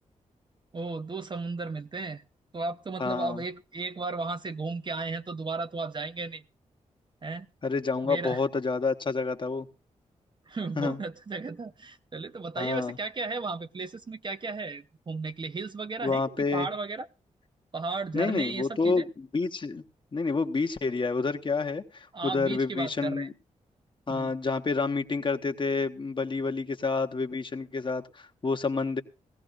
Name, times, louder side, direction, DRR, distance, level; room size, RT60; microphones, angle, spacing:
voice 1, 0.7-2.2 2.5-6.4 7.2-7.5 8.0-8.4 10.5-17.1 17.7-19.1 22.1-23.3 24.1-24.3, right 3 dB, 35° right, 0.7 m, -35 dB
voice 2, 3.0-3.4 7.6-9.7 10.8-11.0 12.6-13.0 16.0-16.7 18.1-19.8 20.1-23.3 24.1-29.0, left 4 dB, 40° left, 1.1 m, -29 dB
18.5 x 15.0 x 2.6 m
cardioid pair, 70°, 13 cm